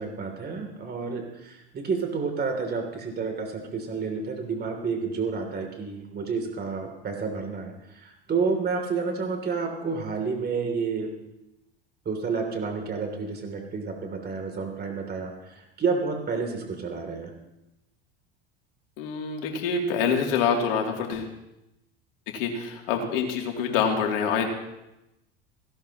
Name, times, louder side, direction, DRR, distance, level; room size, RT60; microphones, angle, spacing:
voice 1, 0.0-11.1 12.0-17.3, right 5 dB, 30° right, 3 dB, 2.9 m, -30 dB
voice 2, 19.0-21.3 22.3-24.5, left 6 dB, 65° left, 1 dB, 2.8 m, -26 dB
17.0 x 17.0 x 3.0 m, 0.91 s
hypercardioid pair, 75°, 30 cm